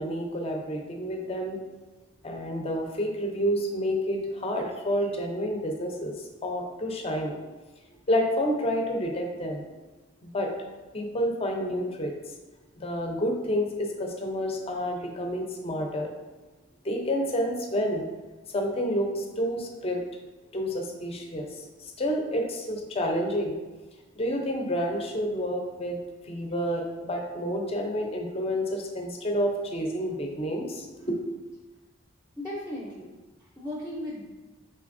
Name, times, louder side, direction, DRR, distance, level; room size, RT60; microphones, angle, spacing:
voice 1, 0.0-1.6 2.2-7.4 8.1-9.7 10.2-10.5 10.9-12.1 12.8-16.1 16.8-18.0 18.5-20.0 20.5-23.6 24.2-26.0 26.3-31.3, equal, 30° left, 2 dB, 0.5 m, -29 dB
voice 2, 32.4-34.2, left 1 dB, 10° right, -4 dB, 0.6 m, -37 dB
5.4 x 3.3 x 2.6 m, 1.2 s
head